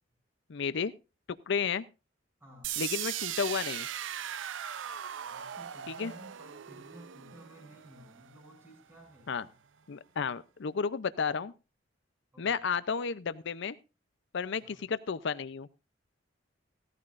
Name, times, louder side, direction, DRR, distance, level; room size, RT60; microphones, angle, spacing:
voice 1, 0.5-0.9 1.5-1.8 2.8-3.9 6.0-6.1 9.3-9.4 9.9-11.5 12.4-13.8 14.3-15.7, left 6 dB, 65° left, 15 dB, 0.5 m, -32 dB
voice 2, 2.4-2.7 5.2-9.5 12.3-12.6 14.6-14.8, equal, 10° right, 1 dB, 7.9 m, -54 dB
sound 1, 2.6-8.6, right 11 dB, 70° right, 0.5 m, -39 dB
16.5 x 13.5 x 2.5 m, 0.30 s
head